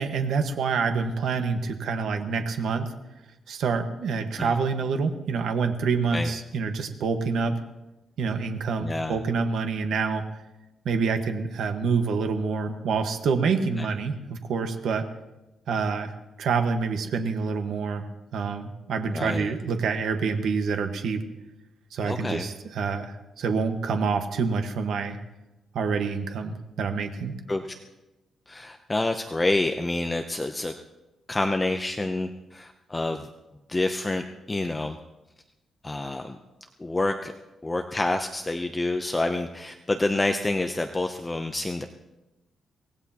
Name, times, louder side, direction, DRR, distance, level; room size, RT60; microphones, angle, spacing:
voice 1, 0.0-2.9 3.5-7.6 8.2-10.2 10.8-15.1 15.7-16.1 16.4-18.0 18.3-21.2 21.9-25.2 25.7-27.4, right 5 dB, 75° right, 6 dB, 1.4 m, -27 dB
voice 2, 8.8-9.2 13.8-13.9 19.1-19.5 22.0-22.5 27.5-27.7 28.5-30.7 31.3-33.3 33.7-35.0 35.8-36.4 36.8-37.3 37.6-41.9, left 2 dB, 15° left, 5 dB, 0.6 m, -28 dB
24.5 x 18.0 x 2.9 m, 0.99 s
wide cardioid pair, 165°, 0 cm